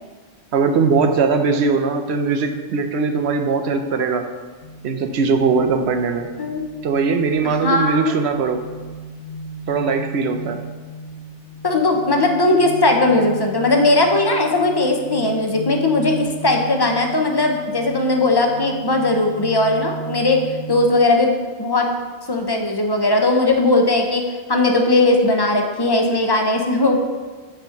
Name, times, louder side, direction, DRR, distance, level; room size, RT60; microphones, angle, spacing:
voice 1, 0.5-4.2 4.8-6.3 6.8-8.6 9.7-10.6, right 4 dB, 70° right, 7 dB, 0.9 m, -20 dB
sound 1, 4.6-20.9, right 1 dB, 70° left, 1.0 m, -35 dB
voice 2, 7.4-8.2 11.6-20.4 20.7-21.3 21.6-21.9 22.3-24.2 24.5-27.0, left 2 dB, 25° left, 3 dB, 0.7 m, -18 dB
5.6 x 5.0 x 6.5 m, 1.4 s
omnidirectional pair, 1.2 m